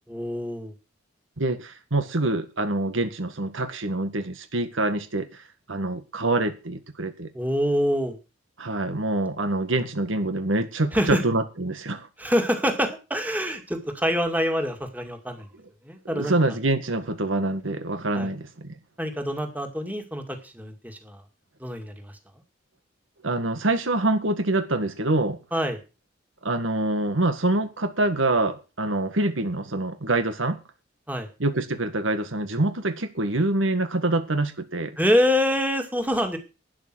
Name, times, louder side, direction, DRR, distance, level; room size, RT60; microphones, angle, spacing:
voice 1, 0.1-0.7 7.3-8.2 10.9-11.2 12.2-15.5 15.8-16.4 18.1-18.3 19.0-21.2 21.6-22.1 25.5-25.8 31.1-31.3 35.0-36.4, equal, 10° right, 2.2 m, -25 dB
voice 2, 1.4-7.3 8.6-12.1 16.0-18.8 23.2-25.4 26.4-30.6 31.4-35.0, right 2 dB, 85° right, 1.7 m, -25 dB
12.0 x 9.5 x 6.2 m
head